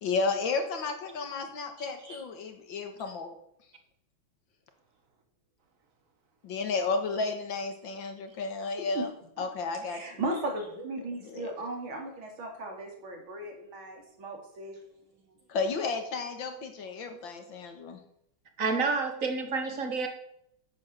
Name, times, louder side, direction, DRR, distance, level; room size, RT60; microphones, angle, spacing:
voice 1, 0.0-3.3 6.4-9.1 9.4-10.2 11.2-11.5 15.5-18.0, left 4 dB, 70° left, 6 dB, 2.3 m, -32 dB
voice 2, 1.8-2.2 8.7-9.1 9.8-14.8 15.3-15.4, right 2 dB, 80° right, 1 dB, 3.4 m, -37 dB
voice 3, 18.6-20.1, right 4 dB, 40° right, 5 dB, 1.9 m, -29 dB
9.4 x 8.2 x 6.8 m, 0.73 s
omnidirectional pair, 2.2 m